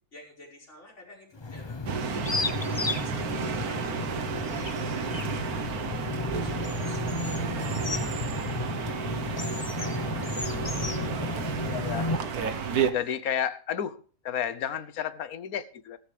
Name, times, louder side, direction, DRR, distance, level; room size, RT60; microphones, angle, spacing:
voice 1, 0.1-8.8 9.3-11.0 12.9-13.2, left 1 dB, 50° left, 5.7 m, -52 dB
sound 1, 1.4-12.2, left 3 dB, 25° left, 0.6 m, -33 dB
sound 2, 1.9-12.9, right 6 dB, 85° right, 1.6 m, -32 dB
voice 2, 11.6-12.1 12.9-16.0, left 9 dB, 75° left, 1.4 m, -32 dB
17.0 x 14.5 x 3.4 m
omnidirectional pair, 1.5 m